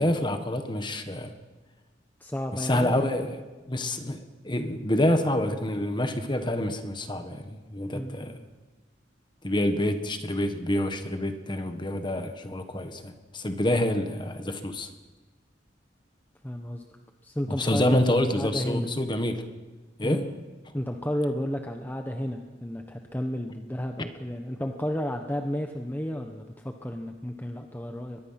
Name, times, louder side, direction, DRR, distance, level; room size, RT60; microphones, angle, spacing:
voice 1, 0.0-1.3 2.5-3.3 3.7-8.4 9.4-14.9 17.5-19.5 20.0-20.3, left 1 dB, 25° left, 8 dB, 1.5 m, -27 dB
voice 2, 2.2-2.9 7.9-8.2 16.4-16.8 17.2-18.9 20.0-20.3 20.7-28.2, equal, 10° left, 4 dB, 1.0 m, -32 dB
22.5 x 21.0 x 5.9 m, 1.3 s
head